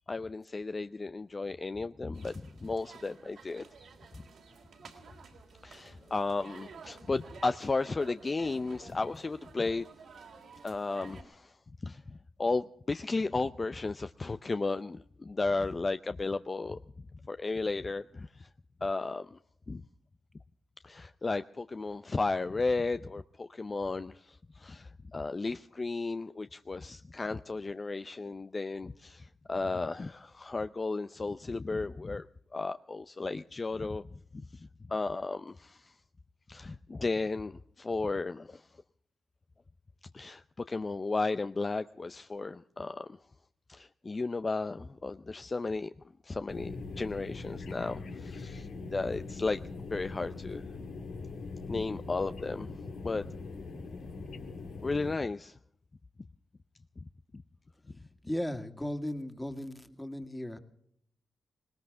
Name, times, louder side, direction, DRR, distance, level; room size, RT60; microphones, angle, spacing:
voice 1, 0.1-3.6 5.6-9.9 10.6-11.6 11.8-16.8 17.2-18.5 18.8-19.4 19.7-19.8 20.8-32.3 32.5-36.0 36.5-38.7 40.1-43.2 43.7-45.9 46.2-49.6 49.9-50.6 51.7-52.7 53.0-53.2 54.8-55.6, left 3 dB, 40° left, 11 dB, 0.5 m, -34 dB
sound 1, 2.1-11.2, right 5 dB, 75° right, 3.0 m, -53 dB
sound 2, 46.5-55.2, left 3 dB, 75° left, 1.9 m, -42 dB
voice 2, 57.9-60.6, left 1 dB, 10° left, 7 dB, 2.1 m, -37 dB
19.5 x 19.0 x 3.7 m, 0.69 s
supercardioid pair, 40°, 0 cm